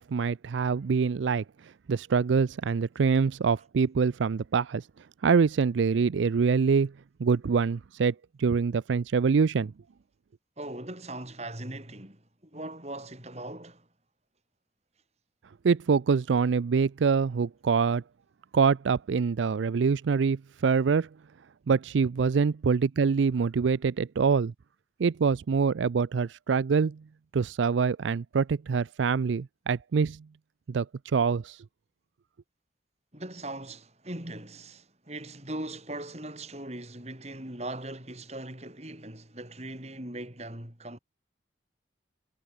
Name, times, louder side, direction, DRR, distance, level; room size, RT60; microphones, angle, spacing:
voice 1, 0.0-4.9 5.2-6.9 7.2-9.7 15.6-18.0 18.5-21.1 21.7-24.5 25.0-27.0 27.3-30.2 30.7-31.6, right 5 dB, 80° right, 0.4 m, -25 dB
voice 2, 10.6-13.9 33.1-41.0, right 1 dB, 35° right, 5.0 m, -40 dB
head